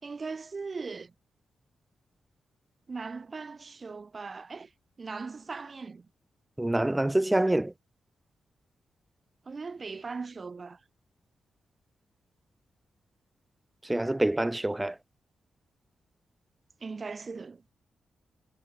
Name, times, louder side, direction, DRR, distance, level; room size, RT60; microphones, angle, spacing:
voice 1, 0.0-1.1 2.9-4.7 5.0-6.1 9.5-10.8 16.8-17.6, right 4 dB, 35° right, 3.5 m, -39 dB
voice 2, 6.6-7.7 13.8-15.0, right 1 dB, 10° right, 1.3 m, -26 dB
cardioid pair, 95°, 0 cm